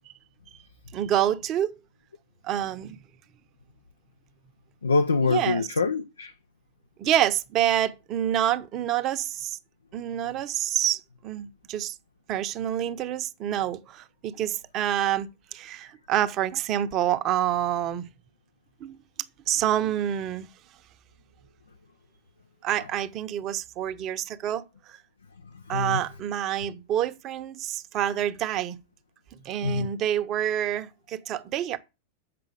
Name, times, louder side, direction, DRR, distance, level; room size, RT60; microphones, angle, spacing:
voice 1, 0.9-1.7 2.4-3.0 5.2-5.7 7.0-9.6 9.9-11.9 12.3-18.1 18.8-19.0 19.5-20.5 22.6-25.0 25.7-28.8 29.4-31.8, right 11 dB, 35° right, 0.8 m, -27 dB
voice 2, 4.8-6.3 25.7-26.0 29.6-29.9, left 4 dB, 75° left, 0.5 m, -24 dB
7.7 x 5.5 x 6.7 m
figure-of-eight pair, 90°, 0 cm